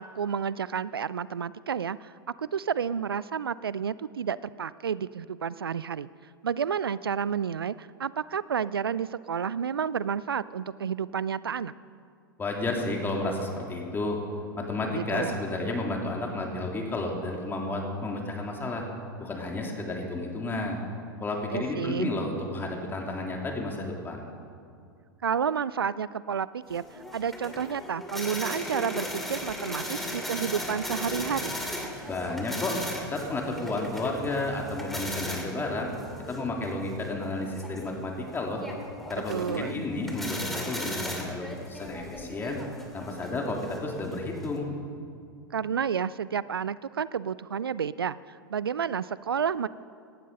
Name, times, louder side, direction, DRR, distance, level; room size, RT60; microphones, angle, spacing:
voice 1, 0.0-2.1 2.4-6.1 6.4-11.7 14.9-15.4 21.5-22.1 25.2-31.6 39.3-39.9 45.5-49.7, right 7 dB, 85° right, 19 dB, 0.4 m, -30 dB
voice 2, 12.4-14.2 14.7-18.8 19.2-20.8 21.2-24.2 32.1-32.7 33.1-35.9 36.3-38.6 39.1-42.6 42.9-44.8, left 2 dB, 15° left, 0 dB, 3.0 m, -32 dB
sound 1, 26.7-44.6, left 1 dB, ahead, 2.5 m, -37 dB
17.5 x 12.0 x 5.4 m, 2.3 s
figure-of-eight pair, 95°, 12 cm